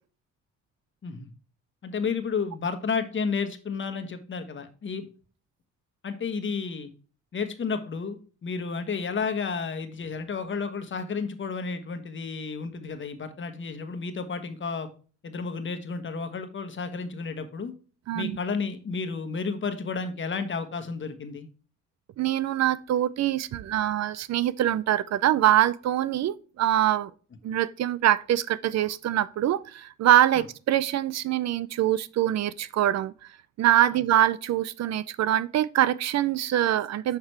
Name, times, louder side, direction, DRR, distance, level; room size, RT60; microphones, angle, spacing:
voice 1, 1.8-5.0 6.0-6.9 7.3-14.9 15.2-17.7 18.1-21.5, left 5 dB, 40° left, 1.2 m, -32 dB
voice 2, 22.2-27.1 27.4-33.1 33.6-37.2, right 12 dB, 60° right, 0.5 m, -24 dB
6.3 x 5.8 x 3.2 m
cardioid pair, 90°, 30 cm